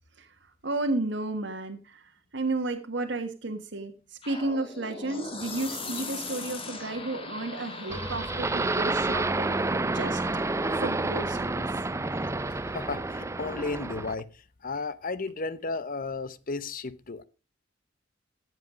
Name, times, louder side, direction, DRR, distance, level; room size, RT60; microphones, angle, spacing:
voice 1, 0.6-3.9 4.2-10.2 10.7-11.7, right 2 dB, 65° right, 1.5 m, -32 dB
sound 1, 4.2-9.3, left 3 dB, 30° left, 2.1 m, -39 dB
sound 2, 7.9-14.2, right 2 dB, 15° right, 0.5 m, -29 dB
voice 2, 12.5-17.2, left 3 dB, 45° left, 0.9 m, -34 dB
15.0 x 8.1 x 5.1 m
head